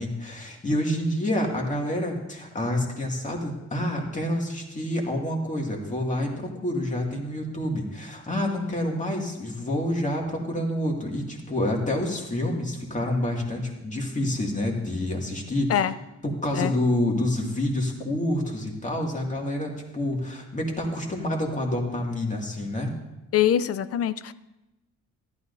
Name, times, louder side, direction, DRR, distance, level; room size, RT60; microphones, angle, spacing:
voice 1, 0.0-15.7 16.2-22.9, left 1 dB, 25° left, 0 dB, 2.4 m, -28 dB
voice 2, 23.3-24.3, left 10 dB, 50° left, 15 dB, 0.5 m, -23 dB
14.0 x 12.0 x 2.7 m, 1.0 s
cardioid pair, 90°, 30 cm